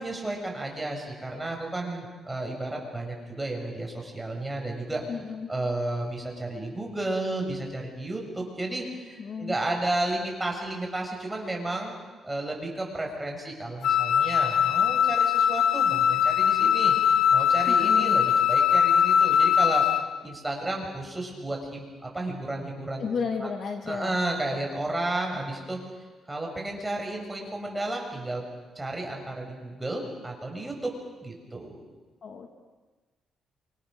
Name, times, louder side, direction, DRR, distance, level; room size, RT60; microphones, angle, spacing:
voice 1, 0.0-5.0 5.5-11.9 12.2-16.9 17.3-19.9 20.2-23.5 23.8-25.8 26.3-28.4 28.7-30.9 31.2-31.8, right 2 dB, 15° right, 0 dB, 6.7 m, -32 dB
voice 2, 5.1-5.5 9.2-9.5 17.7-18.2 23.0-24.2 32.2-32.6, left 5 dB, 55° left, 4 dB, 2.7 m, -33 dB
Wind instrument woodwind instrument, 13.8-20.1, left 8 dB, 80° left, 1.7 m, -21 dB
28.0 x 26.5 x 6.5 m, 1.3 s
cardioid pair, 115°, 0 cm